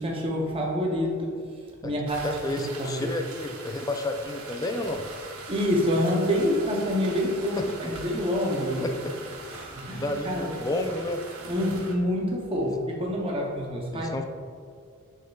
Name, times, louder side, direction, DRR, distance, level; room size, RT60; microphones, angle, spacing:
voice 1, 0.0-3.1 5.5-8.9 9.5-10.5 11.5-14.2, equal, 25° right, -1 dB, 0.6 m, -27 dB
sound 1, 2.1-12.0, right 3 dB, 70° right, 0.9 m, -42 dB
voice 2, 2.2-5.0 7.6-7.9 8.8-9.3 10.0-11.2 13.9-14.2, left 2 dB, 15° left, 5 dB, 0.3 m, -31 dB
6.5 x 6.2 x 2.3 m, 2.2 s
head